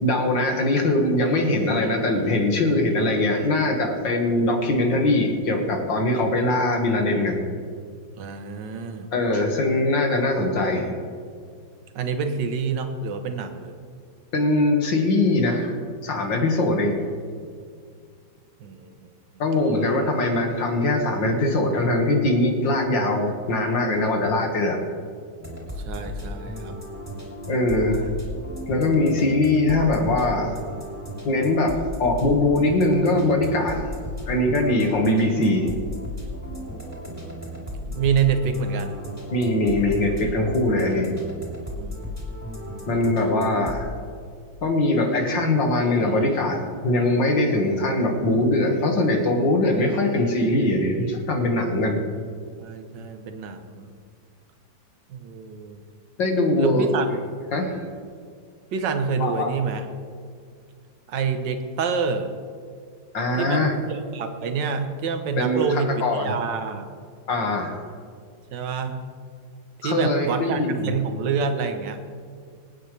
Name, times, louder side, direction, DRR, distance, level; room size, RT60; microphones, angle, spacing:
voice 1, 0.0-7.4 9.1-10.9 14.3-17.0 19.4-24.8 27.5-28.1 28.7-30.6 31.2-33.8 34.3-35.7 39.3-41.1 42.9-43.9 44.6-52.0 56.2-56.9 57.5-57.8 59.2-59.5 63.1-63.8 65.4-66.3 67.3-67.8 69.8-71.0, left 2 dB, 70° left, 2 dB, 2.5 m, -22 dB
voice 2, 8.2-9.1 11.9-13.7 16.6-16.7 18.6-19.1 19.6-20.1 25.8-26.7 37.2-39.0 41.2-41.3 41.8-42.0 52.6-53.9 55.1-55.8 56.6-57.2 58.7-59.9 61.1-62.3 63.4-66.9 68.5-69.1 69.8-72.0, right 5 dB, 70° right, 7 dB, 1.7 m, -27 dB
sound 1, 25.4-43.9, left 1 dB, 10° right, 3.2 m, -35 dB
26.0 x 9.4 x 3.3 m, 2.1 s
omnidirectional pair, 2.1 m